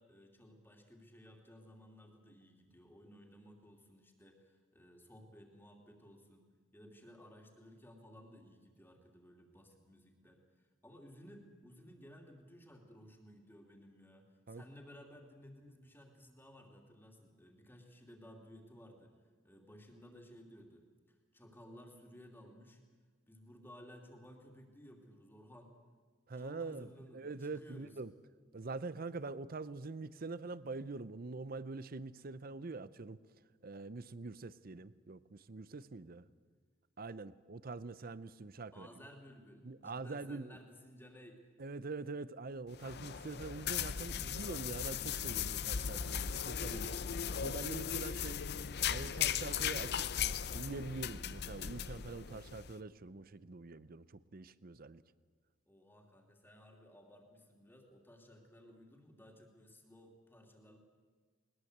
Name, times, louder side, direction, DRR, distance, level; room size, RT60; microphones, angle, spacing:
voice 1, 0.0-19.2 19.4-22.8 23.3-25.7 26.4-28.0 38.7-41.5 55.7-60.8, equal, 10° left, 2 dB, 2.8 m, -57 dB
voice 2, 26.3-26.9 27.1-28.1 28.5-33.2 33.6-36.3 37.0-38.9 39.6-40.6 41.6-47.0 47.4-48.4 48.9-50.1 50.5-54.1 54.3-55.0, right 3 dB, 50° right, 16 dB, 0.7 m, -44 dB
sound 1, 42.7-52.7, left 8 dB, 55° left, 0.7 m, -38 dB
21.0 x 20.5 x 8.0 m, 1.5 s
head